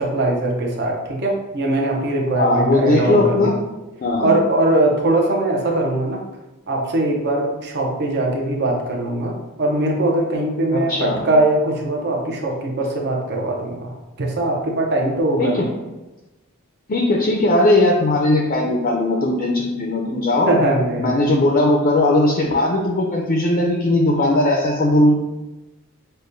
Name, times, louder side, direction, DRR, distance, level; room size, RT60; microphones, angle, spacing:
voice 1, 0.0-3.6 4.2-6.2 6.7-15.6 20.5-21.2, right 1 dB, 50° right, 0 dB, 0.7 m, -21 dB
voice 2, 2.4-3.5 4.0-4.3 10.7-11.2 15.4-15.6 16.9-20.5 21.0-25.2, left 2 dB, 40° left, 0 dB, 0.4 m, -18 dB
6.4 x 2.2 x 2.6 m, 1.1 s
head